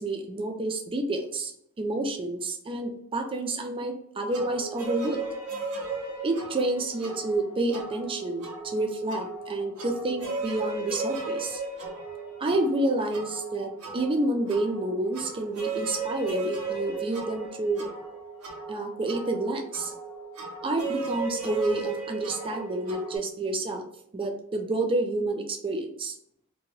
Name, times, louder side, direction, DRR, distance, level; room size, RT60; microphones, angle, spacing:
voice 1, 0.0-1.5 1.8-5.2 6.2-11.6 12.4-17.9 18.7-19.9 20.6-23.8 24.1-26.1, right 2 dB, 25° right, 4 dB, 0.4 m, -29 dB
sound 1, 4.3-23.2, right 3 dB, 90° right, 0.9 m, -36 dB
2.7 x 2.2 x 3.0 m, 0.72 s
head